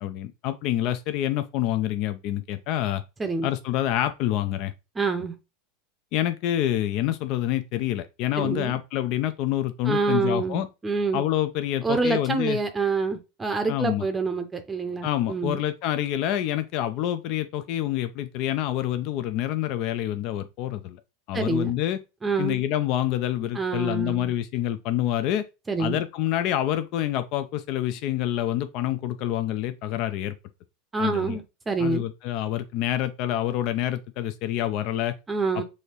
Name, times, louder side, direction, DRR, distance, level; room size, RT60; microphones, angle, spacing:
voice 1, 0.0-3.0 3.4-4.7 6.1-10.7 11.1-12.6 13.7-14.1 15.0-21.0 21.3-22.0 22.4-25.5 25.8-30.3 31.0-31.4 31.8-35.2 35.5-35.6, left 12 dB, 55° left, 0.4 m, -27 dB
voice 2, 5.0-5.3 8.4-8.8 9.9-11.2 11.8-15.6 21.3-21.7 22.2-22.6 23.5-24.3 25.7-26.0 30.9-32.1 35.3-35.6, right 4 dB, 15° right, 0.6 m, -27 dB
6.3 x 2.7 x 3.0 m
hypercardioid pair, 100°, 0 cm